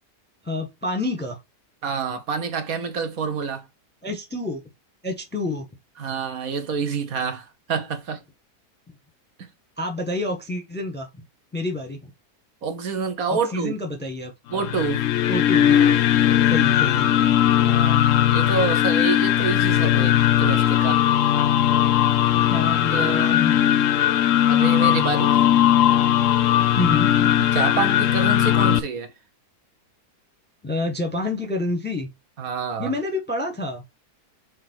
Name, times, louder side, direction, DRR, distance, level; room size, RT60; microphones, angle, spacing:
voice 1, 0.4-1.4 4.0-4.6 5.0-5.7 9.8-11.1 11.5-12.0 13.3-14.3 15.3-16.0 16.5-17.4 22.3-23.6 26.7-27.4 30.6-32.1 32.8-33.8, left 2 dB, 5° left, 1.1 m, -28 dB
voice 2, 1.8-3.7 6.0-8.2 9.4-9.5 12.6-13.7 14.5-15.1 17.6-18.0 18.3-21.0 22.8-23.4 24.5-25.5 27.4-29.1 32.4-32.9, right 5 dB, 60° right, 1.5 m, -27 dB
sound 1, 14.5-28.8, left 11 dB, 65° left, 0.8 m, -19 dB
6.3 x 3.9 x 4.5 m
omnidirectional pair, 1.7 m